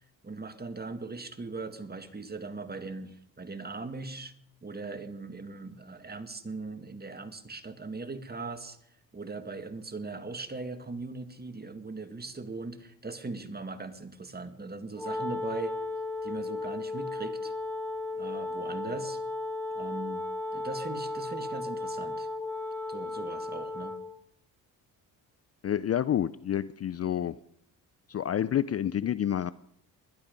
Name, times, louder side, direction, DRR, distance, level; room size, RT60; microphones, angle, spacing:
voice 1, 0.2-4.3 4.6-8.8 9.1-15.8 16.2-17.5 18.2-19.2 19.8-20.3 20.5-22.3 22.9-24.0, right 3 dB, 25° right, 9 dB, 2.0 m, -39 dB
Wind instrument woodwind instrument, 14.9-24.2, left 2 dB, 5° left, 1.9 m, -35 dB
voice 2, 25.6-27.3 28.1-29.5, left 10 dB, 35° left, 17 dB, 0.5 m, -28 dB
20.5 x 11.5 x 5.3 m, 0.72 s
supercardioid pair, 65°, 41 cm